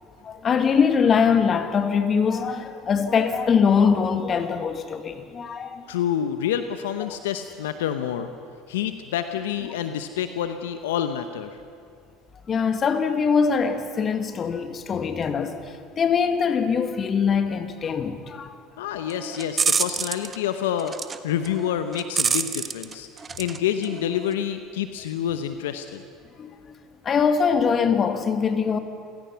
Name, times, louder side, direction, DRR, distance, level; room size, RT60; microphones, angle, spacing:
voice 1, 0.2-5.8 12.5-18.6 26.4-26.5 27.0-28.8, left 6 dB, 40° left, 1.8 m, -22 dB
voice 2, 5.9-8.3 8.7-11.6 18.8-21.0 21.2-23.1 23.4-26.0, left 9 dB, 80° left, 0.8 m, -28 dB
sound 1, 19.1-20.4 20.8-21.2 21.5-23.6 23.8-24.3, right 5 dB, 30° right, 1.2 m, -26 dB
27.5 x 17.0 x 5.8 m
hypercardioid pair, 70°, 0 cm